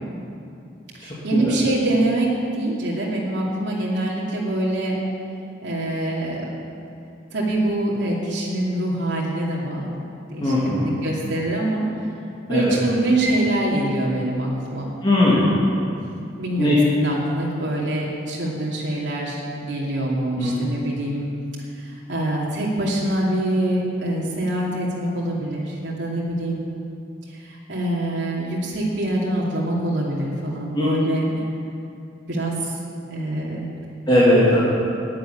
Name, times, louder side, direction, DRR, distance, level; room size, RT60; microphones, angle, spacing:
voice 1, 0.9-5.0 5.6-6.5 7.3-10.0 10.3-12.1 12.5-14.9 15.2-15.5 16.4-21.3 21.7-26.7 27.3-31.4 32.3-32.8 33.1-33.7, right 1 dB, 75° right, -5 dB, 2.6 m, -24 dB
voice 2, 10.4-10.9 12.5-12.7 15.0-15.5 16.6-16.8 20.4-20.5 30.7-30.9 34.1-34.6, left 1 dB, 25° left, -9 dB, 2.8 m, -18 dB
11.5 x 9.3 x 9.8 m, 2.5 s
head